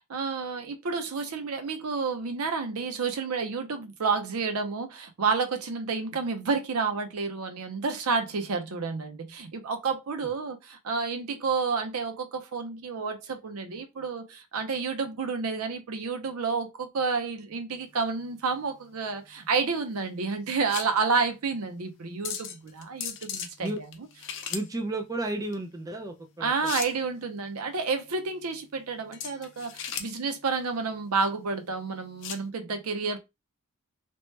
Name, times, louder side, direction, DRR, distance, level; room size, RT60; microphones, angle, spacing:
voice 1, 0.1-24.1 26.4-33.2, right 4 dB, 75° right, 0.6 m, -30 dB
sound 1, 17.8-32.5, left 8 dB, 60° left, 0.5 m, -40 dB
voice 2, 24.5-26.7, right 2 dB, 15° right, 0.4 m, -33 dB
3.0 x 2.1 x 3.1 m
head